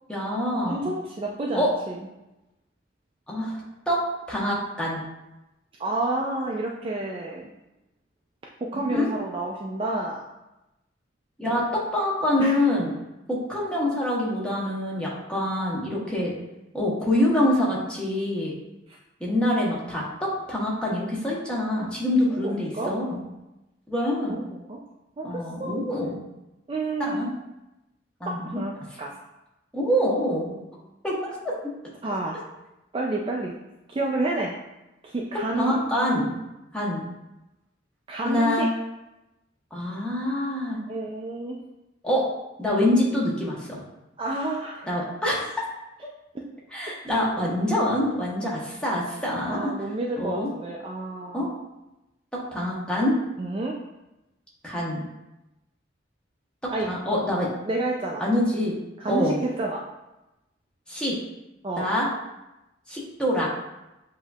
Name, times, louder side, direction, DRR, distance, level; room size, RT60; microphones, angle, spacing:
voice 1, 0.1-0.8 1.5-1.7 3.3-3.6 3.9-5.0 8.9-9.1 11.4-12.9 13.3-16.3 16.7-18.5 19.2-23.2 23.9-24.5 25.2-26.2 27.1-27.3 28.2-28.6 29.7-30.6 31.0-31.7 35.6-36.3 36.7-37.0 38.2-38.7 39.7-40.8 42.0-42.3 42.6-43.8 44.9-45.6 46.7-49.7 50.1-50.5 51.3-51.5 52.3-53.1 54.6-55.0 56.6-57.5 58.2-58.7 59.1-59.4 60.9-61.2 61.8-62.1 62.9-63.5, left 1 dB, 5° left, -6 dB, 1.0 m, -25 dB
voice 2, 0.7-2.0 5.8-7.5 8.6-10.3 12.4-12.6 18.9-19.0 22.4-22.9 24.3-24.8 25.2-25.8 26.7-27.2 28.3-28.7 29.0-29.1 32.0-32.5 32.9-33.5 33.9-34.5 35.0-35.8 38.1-38.7 40.9-41.6 44.2-45.0 46.3-46.5 49.5-51.5 53.4-53.7 56.7-56.9 57.7-58.3 59.0-59.8 61.6-61.9, right 2 dB, 30° right, -1 dB, 0.3 m, -29 dB
7.4 x 2.7 x 2.3 m, 0.95 s
head